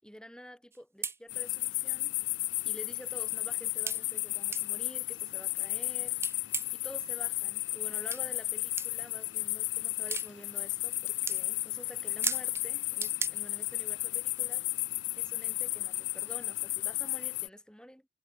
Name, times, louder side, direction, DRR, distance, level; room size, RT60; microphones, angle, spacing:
voice 1, 0.0-2.1 2.6-18.1, equal, 5° left, 4.3 m, -49 dB
sound 1, 0.7-0.8 1.0-1.2 2.0-2.1 2.6-2.7 3.9-4.0 4.5-4.7 6.2-6.8 8.1-8.2 8.8-8.9 10.1-10.3 10.8-11.0 11.3-11.4 12.2-12.6 13.0-13.3, right 5 dB, 15° right, 0.6 m, -34 dB
sound 2, 1.3-17.5, left 21 dB, 65° left, 0.4 m, -34 dB
head